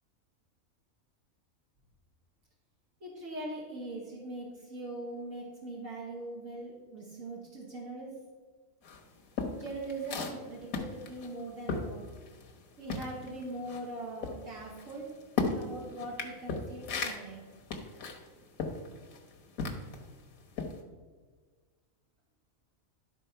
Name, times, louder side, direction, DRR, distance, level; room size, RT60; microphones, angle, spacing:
voice 1, 3.0-8.2 9.5-12.1 12.8-15.1 15.5-17.4, right 2 dB, 70° right, -3 dB, 1.7 m, -41 dB
sound 1, 8.8-12.6 12.9-20.1 20.5-20.8, left 4 dB, 85° left, 1.5 m, -36 dB
11.5 x 4.0 x 5.6 m, 1.5 s
omnidirectional pair, 1.4 m